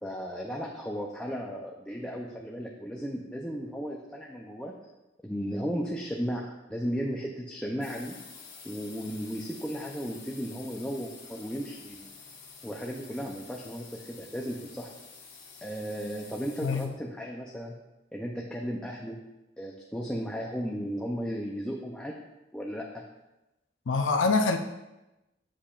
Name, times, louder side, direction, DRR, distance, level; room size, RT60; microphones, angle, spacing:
voice 1, 0.0-4.7 5.2-8.1 8.6-12.1 12.6-14.9 15.6-17.7 18.1-19.2 19.6-22.1 22.5-23.0, equal, 5° left, -2 dB, 0.5 m, -35 dB
sound 1, 7.8-16.9, left 5 dB, 40° left, 1.5 m, -49 dB
voice 2, 23.9-24.6, left 4 dB, 85° left, 5 dB, 0.5 m, -25 dB
8.5 x 7.8 x 2.5 m, 0.99 s
head